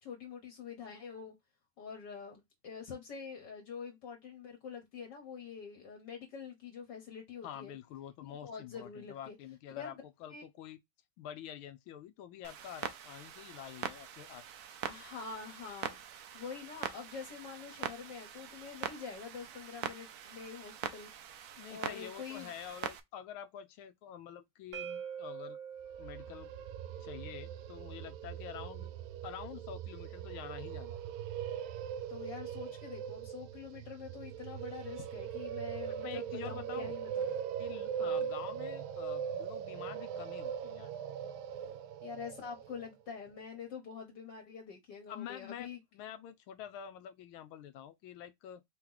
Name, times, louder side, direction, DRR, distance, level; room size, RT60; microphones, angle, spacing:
voice 1, 0.0-1.4 1.8-7.7 8.2-9.4 9.8-10.0 10.3-10.4 14.9-16.0 16.3-21.1 21.7-22.5 32.1-37.4 37.9-38.3 42.0-45.8, left 6 dB, 60° left, 1.7 m, -46 dB
voice 2, 7.4-10.8 11.2-14.4 14.7-14.8 21.6-25.6 26.0-26.5 27.0-28.9 29.2-31.0 35.9-36.9 37.6-40.9 45.1-48.6, left 10 dB, 85° left, 1.5 m, -47 dB
Clock, 12.4-23.0, right 9 dB, 65° right, 1.0 m, -43 dB
sound 1, 24.7-30.5, right 8 dB, 45° right, 0.6 m, -48 dB
sound 2, 25.9-42.9, right 8 dB, 85° right, 1.4 m, -40 dB
4.6 x 3.0 x 3.8 m
omnidirectional pair, 2.2 m